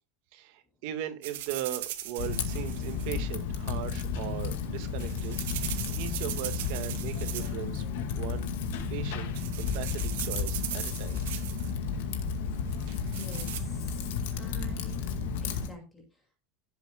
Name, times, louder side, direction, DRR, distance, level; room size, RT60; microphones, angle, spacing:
voice 1, 0.3-7.8 8.1-8.5 8.9-11.2 12.9-13.0, right 11 dB, 55° right, 1.7 m, -39 dB
sound 1, 1.2-3.1 4.6-7.7 8.0-8.4 8.9-9.1 9.3-11.7 12.7-13.6, right 13 dB, 80° right, 1.7 m, -39 dB
Typing, 2.2-15.7, left 6 dB, 80° left, 2.1 m, -33 dB
voice 2, 12.9-14.1 14.4-16.4, equal, 10° left, 2.4 m, -49 dB
16.0 x 7.6 x 2.4 m
supercardioid pair, 165°, 0 cm